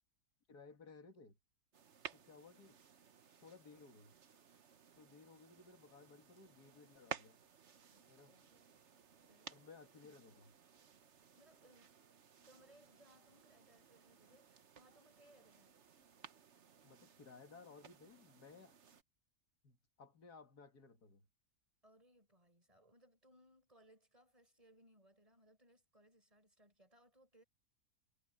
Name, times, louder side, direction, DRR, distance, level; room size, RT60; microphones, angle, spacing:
voice 1, 0.5-1.4 2.1-2.8 3.4-4.1 5.0-7.4 8.1-8.4 9.5-10.6 16.8-18.7 19.6-21.3, left 4 dB, 80° left, 2.6 m, -59 dB
sound 1, 1.7-19.0, right 7 dB, 50° right, 1.2 m, -56 dB
voice 2, 7.9-8.9 9.3-9.5 11.4-11.9 12.4-15.8 21.8-27.4, equal, 20° right, 5.2 m, -68 dB
omnidirectional pair, 1.7 m